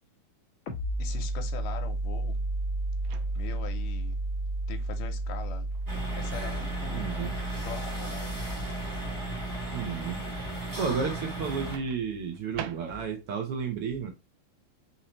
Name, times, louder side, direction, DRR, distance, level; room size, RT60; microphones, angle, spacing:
sound 1, 0.7-12.0, right 2 dB, 60° left, 1.3 m, -33 dB
voice 1, 1.0-2.5 3.4-4.2 4.7-5.7 6.2-7.1 7.6-8.3, left 8 dB, 80° left, 2.4 m, -41 dB
Microwave oven, 3.0-3.7 5.7-5.9 11.7-13.3, right 12 dB, 90° right, 1.6 m, -43 dB
sound 2, 5.9-11.8, right 1 dB, 10° right, 1.5 m, -36 dB
voice 2, 6.9-7.4 9.7-10.2 10.5-14.1, right 6 dB, 65° right, 1.4 m, -32 dB
5.6 x 2.8 x 3.1 m
omnidirectional pair, 3.8 m